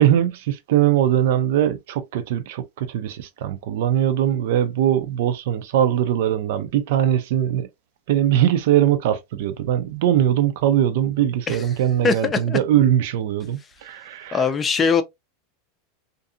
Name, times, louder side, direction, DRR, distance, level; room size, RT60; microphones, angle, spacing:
voice 1, 0.0-7.7 8.1-14.4, right 11 dB, 70° right, 0.4 m, -21 dB
voice 2, 12.0-12.6 14.3-15.0, left 5 dB, 20° left, 0.4 m, -21 dB
2.6 x 2.5 x 2.4 m
supercardioid pair, 140°, 0 cm